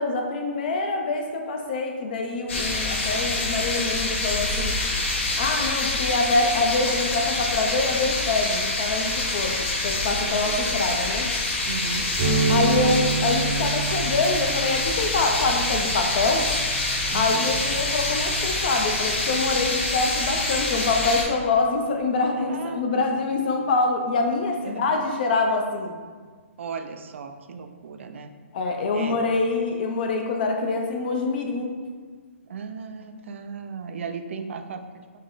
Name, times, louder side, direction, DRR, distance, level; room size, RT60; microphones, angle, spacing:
voice 1, 0.0-4.8 5.4-11.3 12.5-16.5 17.1-25.9 28.5-31.7, left 3 dB, 40° left, 3 dB, 0.5 m, -25 dB
sound 1, 2.5-21.2, left 2 dB, 60° left, 0.9 m, -26 dB
voice 2, 10.2-10.6 11.6-12.1 17.1-17.6 22.5-23.1 24.6-24.8 26.6-28.3 28.9-29.2 32.4-35.1, right 5 dB, 60° right, 7 dB, 0.4 m, -36 dB
sound 2, 12.2-19.8, right 3 dB, 35° right, 0.7 m, -30 dB
5.3 x 2.1 x 3.8 m, 1.5 s
hypercardioid pair, 165°, 7 cm